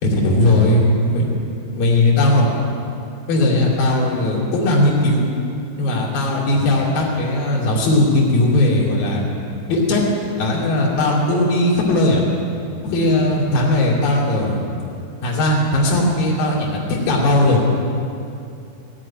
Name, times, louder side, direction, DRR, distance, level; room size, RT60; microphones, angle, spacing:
voice 1, 0.0-1.3 1.7-2.5 3.3-5.2 5.8-9.2 9.7-10.0 10.4-12.2 12.8-14.6 15.2-17.6, left 1 dB, 60° left, -4 dB, 4.1 m, -18 dB
15.0 x 7.4 x 9.8 m, 2.6 s
omnidirectional pair, 4.8 m